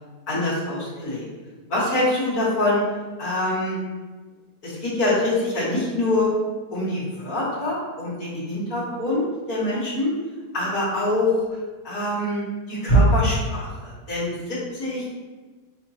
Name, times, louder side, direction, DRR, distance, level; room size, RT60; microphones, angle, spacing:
voice 1, 0.3-1.3 1.7-2.8 3.2-3.8 4.6-6.3 6.7-10.1 10.5-11.4 11.8-15.1, left 1 dB, 70° left, -9 dB, 1.9 m, -24 dB
6.1 x 2.9 x 2.8 m, 1.3 s
omnidirectional pair, 1.6 m